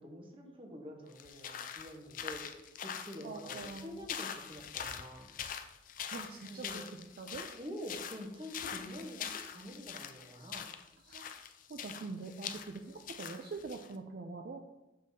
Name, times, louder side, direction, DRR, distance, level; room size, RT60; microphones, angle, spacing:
voice 1, 0.0-2.4 2.8-5.3 6.5-6.8 7.6-10.7, equal, 30° right, 1 dB, 0.9 m, -46 dB
sound 1, 1.1-13.9, left 8 dB, 45° left, 0.4 m, -44 dB
voice 2, 3.2-4.0 6.1-7.5 11.0-11.4 11.7-14.6, right 4 dB, 50° right, 4 dB, 0.4 m, -44 dB
6.5 x 5.3 x 2.7 m, 0.98 s
head